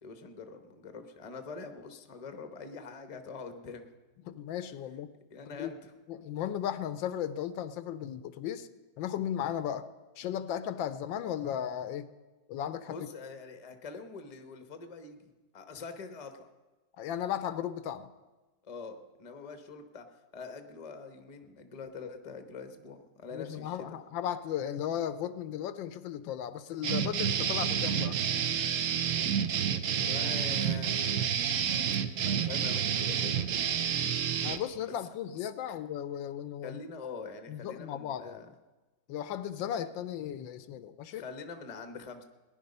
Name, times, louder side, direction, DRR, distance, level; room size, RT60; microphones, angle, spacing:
voice 1, 0.0-3.9 5.3-5.9 12.9-16.5 18.6-20.1 20.3-24.0 29.1-29.4 30.0-31.4 32.2-33.4 35.7-35.8 36.6-38.5 41.1-42.2, left 4 dB, 25° left, 7 dB, 0.8 m, -44 dB
voice 2, 4.2-5.1 5.6-5.7 6.1-8.7 9.0-9.9 10.2-12.1 12.5-13.0 17.0-18.1 23.3-28.2 34.4-36.8 37.5-38.4 39.1-41.3, left 10 dB, 85° left, 13 dB, 1.4 m, -35 dB
sound 1, 26.8-34.6, right 8 dB, 60° right, 0.8 m, -29 dB
18.5 x 10.5 x 5.4 m, 1.2 s
omnidirectional pair, 2.0 m